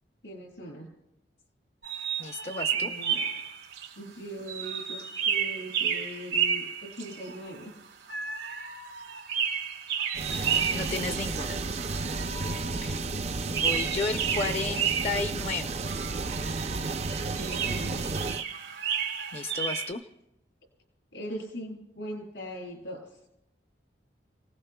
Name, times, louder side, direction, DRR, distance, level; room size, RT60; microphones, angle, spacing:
voice 1, 0.2-0.9 2.7-3.2 4.0-7.7 12.6-13.2 17.3-18.0 21.1-23.0, equal, 85° left, 0 dB, 6.7 m, -40 dB
sound 1, 1.8-3.9 4.5-7.6 8.1-13.2 13.5-15.5 15.8-19.9, right 7 dB, 85° right, 2.4 m, -32 dB
voice 2, 2.2-2.9 10.7-11.6 12.8-13.0 13.5-15.8 19.3-20.0, left 3 dB, 35° left, 6 dB, 0.6 m, -33 dB
sound 2, 10.1-18.4, right 3 dB, 35° right, 0.5 m, -32 dB
29.5 x 19.0 x 2.3 m, 0.88 s
head